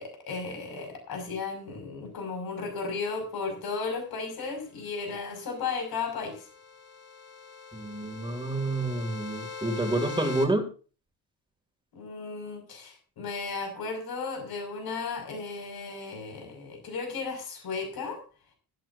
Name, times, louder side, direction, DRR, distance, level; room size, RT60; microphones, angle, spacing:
voice 1, 0.0-6.5 11.9-18.2, left 4 dB, 80° left, 4 dB, 6.2 m, -35 dB
sound 1, 5.5-10.5, left 5 dB, 30° left, 5.4 m, -42 dB
voice 2, 7.7-10.7, right 2 dB, 15° right, 6 dB, 2.6 m, -28 dB
15.5 x 15.0 x 2.7 m, 0.36 s
wide cardioid pair, 155°, 36 cm